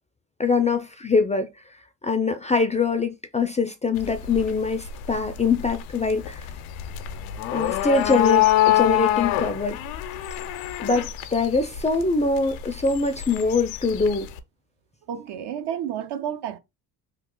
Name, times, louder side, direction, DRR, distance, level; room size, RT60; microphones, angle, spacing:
voice 1, 0.4-1.5 2.0-6.5 7.5-9.8 10.8-14.3, left 4 dB, 15° left, 0.4 m, -23 dB
sound 1, 4.0-14.4, left 13 dB, 80° left, 0.6 m, -26 dB
voice 2, 15.0-16.6, right 9 dB, 55° right, 0.8 m, -31 dB
3.1 x 2.4 x 3.7 m
hypercardioid pair, 65°, 48 cm